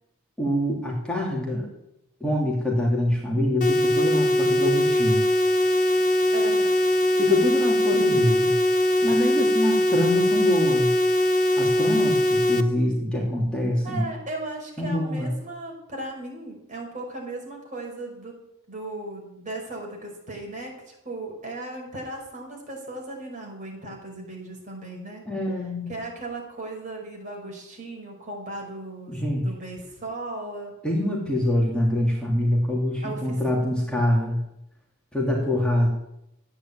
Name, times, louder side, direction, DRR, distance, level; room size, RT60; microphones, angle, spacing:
voice 1, 0.4-1.7 2.2-5.3 7.2-8.4 9.0-10.9 11.6-14.1 14.8-15.3 25.2-25.9 29.1-29.5 30.8-34.4 35.1-35.9, left 1 dB, 5° left, -3 dB, 3.0 m, -25 dB
sound 1, 3.6-12.6, left 1 dB, 35° left, 1.0 m, -21 dB
voice 2, 6.3-7.0 7.9-8.2 13.8-18.4 18.7-25.3 25.9-30.7 33.0-33.9, right 2 dB, 35° right, 0 dB, 5.2 m, -37 dB
13.5 x 9.8 x 8.7 m, 0.83 s
head